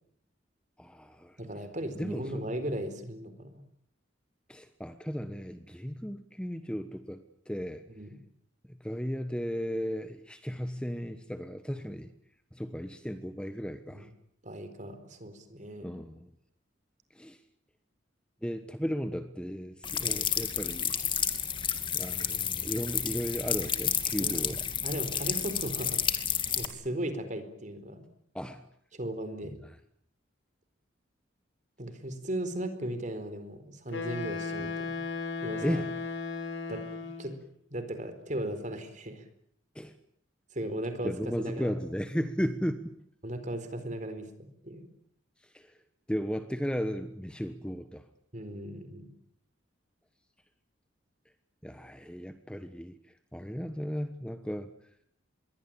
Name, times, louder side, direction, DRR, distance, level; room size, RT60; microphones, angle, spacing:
voice 1, 0.8-1.4 1.9-2.4 4.5-7.8 8.7-12.1 12.5-14.1 15.8-16.3 17.1-17.4 18.4-20.9 21.9-24.6 28.3-28.6 29.4-29.8 34.6-34.7 35.6-36.0 39.7-40.0 41.0-42.9 45.4-45.8 46.1-48.1 51.6-54.7, equal, 5° left, 9 dB, 1.3 m, -35 dB
voice 2, 1.4-3.6 8.0-8.2 13.9-14.1 14.4-15.9 20.0-20.2 24.2-26.1 26.6-28.1 28.9-29.6 31.8-34.9 35.4-35.8 36.7-36.8 37.2-37.3 37.7-39.2 40.5-41.7 43.2-44.3 44.6-44.9 48.3-49.1, right 1 dB, 40° right, 10 dB, 4.3 m, -37 dB
sound 1, 19.8-26.7, left 8 dB, 25° left, 2.5 m, -31 dB
Wind instrument woodwind instrument, 33.9-37.4, left 4 dB, 70° left, 5.0 m, -36 dB
26.0 x 22.5 x 8.8 m, 0.68 s
head